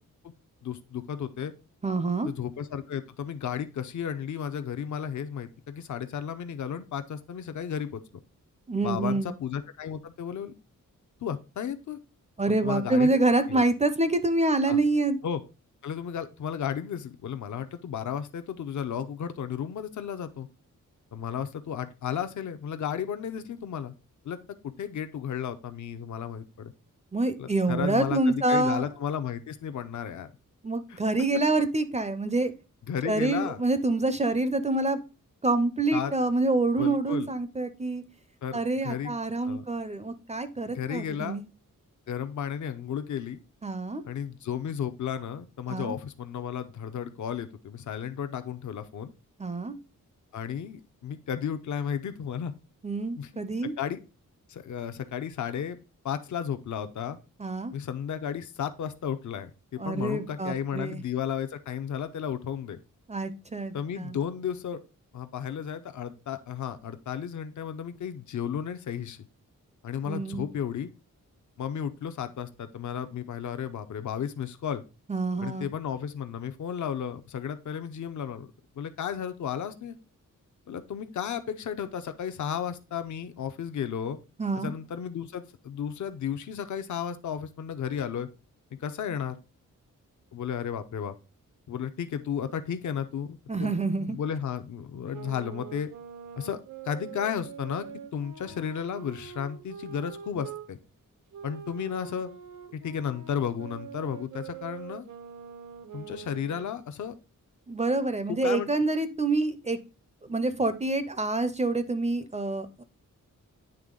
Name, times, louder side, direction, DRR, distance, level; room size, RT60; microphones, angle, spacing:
voice 1, 0.6-1.5 2.2-8.0 8.8-10.5 11.2-12.0 12.5-13.2 13.5-13.6 14.7-14.8 15.2-15.4 15.8-20.5 21.1-23.9 24.2-24.4 24.6-26.7 27.4-30.3 30.9-31.0 32.9-33.6 35.9-36.1 36.8-37.3 38.4-39.2 39.4-39.6 40.7-41.4 42.1-43.4 44.0-49.1 50.3-52.5 53.2-54.0 54.5-55.8 56.0-57.2 57.7-62.8 63.7-64.8 65.1-69.2 69.8-70.9 71.6-74.8 75.4-78.5 78.7-80.0 80.7-84.2 84.6-88.3 88.8-89.4 90.3-91.2 91.7-95.9 96.4-97.9 98.1-100.8 101.4-102.3 102.7-105.1 105.9-107.1 108.3-108.7, left 8 dB, 65° left, 10 dB, 0.6 m, -33 dB
voice 2, 1.8-2.3 8.7-9.3 12.4-15.2 27.1-28.8 30.6-32.5 33.1-35.0 35.4-38.0 38.5-41.4 43.6-44.0 45.7-46.0 49.4-49.8 52.8-53.7 57.4-57.7 59.8-61.0 63.1-64.2 70.1-70.5 75.1-75.7 84.4-84.7 93.5-94.2 107.7-109.8 110.3-112.8, right 2 dB, 20° right, 12 dB, 0.4 m, -27 dB
sound 1, 95.1-100.7 101.3-106.8, right 8 dB, 75° right, 0.8 m, -44 dB
9.0 x 3.4 x 3.7 m, 0.31 s
wide cardioid pair, 140°, 32 cm